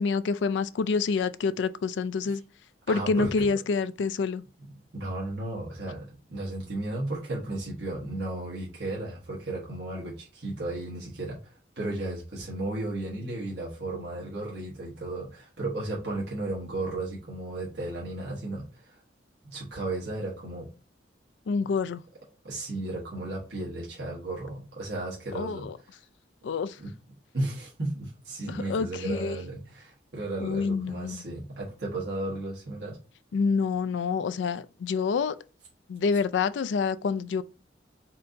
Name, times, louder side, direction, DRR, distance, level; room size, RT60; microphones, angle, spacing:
voice 1, 0.0-2.4 2.9-4.4 21.5-22.0 25.3-25.7 26.4-26.7 28.5-29.4 30.4-31.2 33.3-35.4 35.9-37.4, left 5 dB, 80° left, 0.3 m, -27 dB
voice 2, 2.9-3.5 4.6-19.0 19.4-20.7 22.4-26.0 26.8-26.9 27.3-33.0, right 2 dB, 65° right, 1.2 m, -34 dB
4.4 x 2.6 x 3.9 m
head